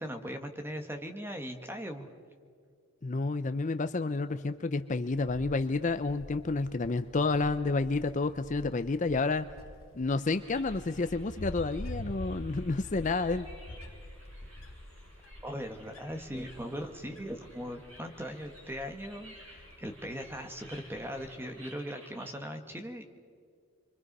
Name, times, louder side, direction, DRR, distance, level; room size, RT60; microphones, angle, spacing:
voice 1, 0.0-2.1 15.4-23.0, equal, 10° right, 5 dB, 1.6 m, -39 dB
voice 2, 3.0-9.5 9.9-13.5, left 3 dB, 35° left, 10 dB, 0.5 m, -30 dB
Wind, 5.1-21.4, left 1 dB, 70° left, 1.3 m, -47 dB
sound 1, 10.3-22.3, equal, 60° right, 7.0 m, -55 dB
29.0 x 24.0 x 5.4 m, 2.1 s
head